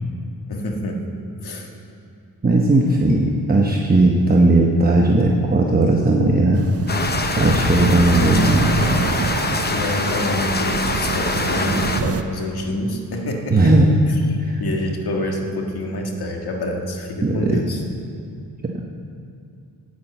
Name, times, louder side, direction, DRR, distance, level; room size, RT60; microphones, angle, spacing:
voice 1, 0.5-1.0 1.4-1.7 9.7-13.7 14.1-17.8, left 1 dB, 70° left, 1 dB, 1.7 m, -27 dB
voice 2, 2.4-6.6 7.3-8.7 13.5-13.9 14.4-14.6 17.2-17.4 18.6-18.8, right 2 dB, 25° right, -1 dB, 0.9 m, -16 dB
sound 1, 6.5-12.2, right 7 dB, 40° right, 0.5 m, -27 dB
sound 2, 6.9-12.0, left 3 dB, 25° left, 0.8 m, -23 dB
10.5 x 9.2 x 7.8 m, 2.5 s
wide cardioid pair, 125°, 39 cm